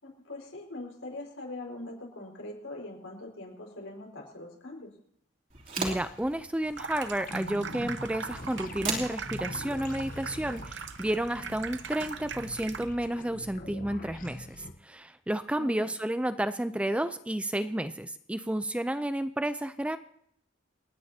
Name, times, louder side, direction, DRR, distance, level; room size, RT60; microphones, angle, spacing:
voice 1, 0.0-4.9 15.6-15.9, left 2 dB, 80° left, 0 dB, 5.0 m, -42 dB
sound 1, 5.5-11.9, right 4 dB, 45° right, 3.3 m, -41 dB
voice 2, 5.8-20.0, right 1 dB, 5° right, 11 dB, 0.4 m, -31 dB
Water tap faucet / Sink (filling or washing), 6.6-13.1, right 5 dB, 60° right, 0.9 m, -40 dB
sound 2, 7.3-14.7, left 1 dB, 45° left, 1.1 m, -43 dB
28.5 x 9.8 x 2.8 m, 0.71 s
head